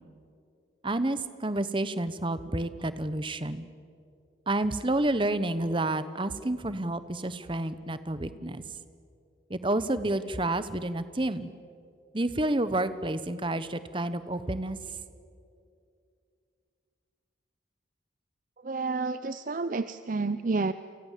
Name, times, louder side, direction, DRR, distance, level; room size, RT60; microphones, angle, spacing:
voice 1, 0.8-3.7 4.5-8.6 9.5-11.5 12.1-14.8, right 1 dB, 25° right, 13 dB, 1.0 m, -29 dB
voice 2, 18.6-20.7, right 3 dB, 45° right, 12 dB, 0.6 m, -30 dB
30.0 x 24.5 x 7.5 m, 2.4 s
head